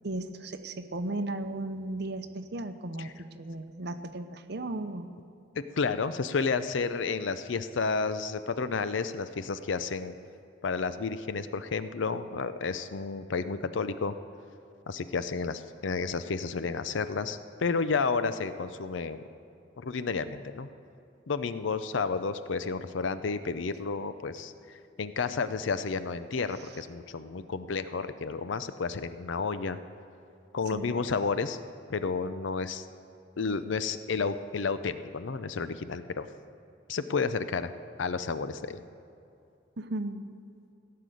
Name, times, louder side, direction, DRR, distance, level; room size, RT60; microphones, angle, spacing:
voice 1, 0.0-5.1 30.7-30.9 39.8-40.3, right 2 dB, 60° right, 8 dB, 0.8 m, -35 dB
voice 2, 5.6-10.1 10.6-14.2 14.9-19.2 19.8-20.7 21.3-29.8 30.5-31.6 31.9-32.9 33.4-36.3 36.9-37.7 38.0-38.8, left 4 dB, 75° left, 12 dB, 0.5 m, -31 dB
16.0 x 6.7 x 9.2 m, 2.6 s
head